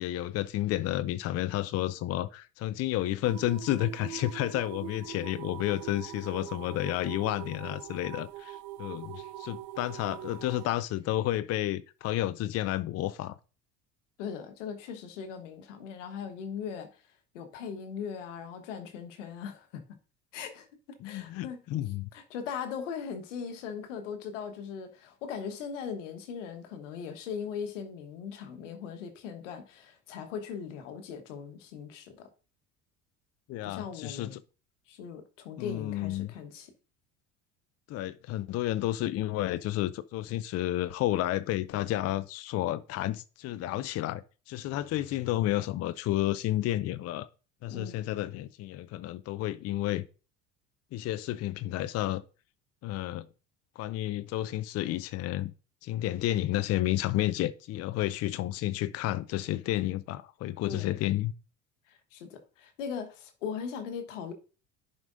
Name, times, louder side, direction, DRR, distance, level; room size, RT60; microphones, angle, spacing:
voice 1, 0.0-13.4 21.0-22.1 33.5-34.3 35.6-36.3 37.9-47.3 47.6-50.0 50.9-52.2 52.8-53.3 53.8-55.5 55.8-61.3, left 14 dB, 45° left, 0.5 m, -31 dB
sound 1, 3.2-10.7, right 13 dB, 55° right, 0.8 m, -43 dB
voice 2, 14.2-17.0 17.3-19.8 20.3-21.6 22.1-32.3 33.6-34.4 34.9-36.7 47.7-47.9 60.6-61.0 61.9-64.3, left 7 dB, 80° left, 1.2 m, -39 dB
10.5 x 5.0 x 2.6 m
hypercardioid pair, 70°, 36 cm